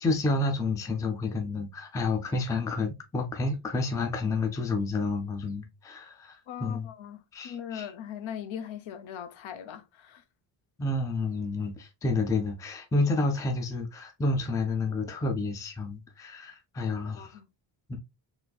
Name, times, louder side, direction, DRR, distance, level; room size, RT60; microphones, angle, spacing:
voice 1, 0.0-6.9 7.3-7.9 10.8-17.4 17.9-18.0, left 3 dB, 10° left, 0.3 m, -30 dB
voice 2, 6.5-10.2 16.8-17.5, left 9 dB, 75° left, 0.7 m, -40 dB
3.8 x 2.6 x 2.2 m
cardioid pair, 160°, 48 cm